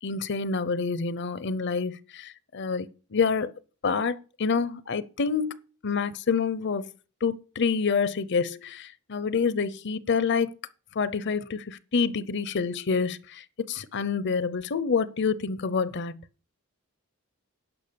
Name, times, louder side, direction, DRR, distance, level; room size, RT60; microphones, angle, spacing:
voice 1, 0.0-3.5 3.8-6.9 7.2-10.5 10.9-16.2, left 5 dB, 50° left, 0.6 m, -27 dB
11.0 x 5.7 x 6.8 m
head